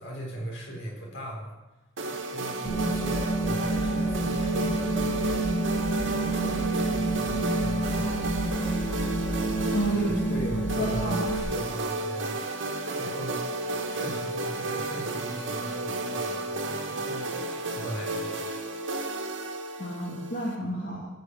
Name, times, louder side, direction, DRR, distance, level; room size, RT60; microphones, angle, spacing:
voice 1, 0.0-1.5 2.2-5.5 6.1-8.3 9.9-12.6 13.0-13.6 13.9-18.4, right 1 dB, 65° left, -2 dB, 4.3 m, -39 dB
sound 1, 2.0-20.6, right 2 dB, 70° right, 1.7 m, -32 dB
sound 2, 2.6-11.4, right 2 dB, 80° left, 3.8 m, -29 dB
voice 2, 9.7-10.2 10.8-11.3 19.8-21.1, right 1 dB, 45° left, -5 dB, 2.2 m, -30 dB
15.0 x 6.6 x 6.5 m, 1.0 s
head